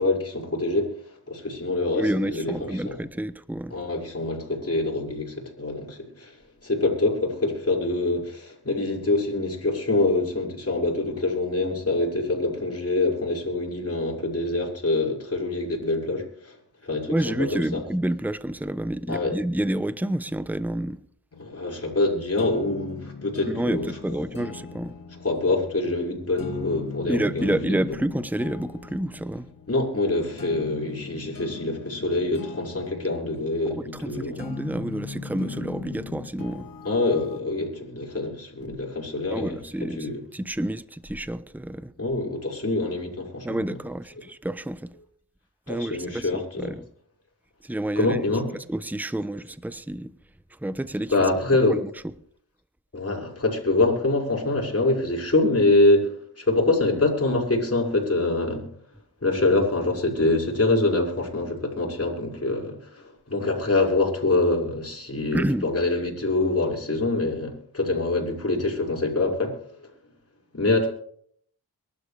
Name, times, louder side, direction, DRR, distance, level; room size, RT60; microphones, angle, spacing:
voice 1, 0.0-3.0 3.7-16.6 16.8-17.8 19.1-19.4 21.4-24.2 25.2-27.8 29.7-34.5 36.8-40.2 42.0-43.8 45.7-46.8 48.0-48.5 51.1-51.8 52.9-58.7 59.2-69.6 70.5-70.9, left 2 dB, 40° left, 6.0 m, -25 dB
voice 2, 1.9-3.8 17.1-21.0 23.5-24.9 27.1-29.5 33.8-36.7 39.3-41.9 43.4-44.9 45.7-46.8 47.6-48.2 48.7-50.1 50.6-51.1 51.7-51.8 65.3-65.6, right 1 dB, 5° right, 0.9 m, -29 dB
sound 1, 21.3-37.4, left 5 dB, 60° left, 1.7 m, -40 dB
23.0 x 12.5 x 3.4 m
cardioid pair, 60°, 38 cm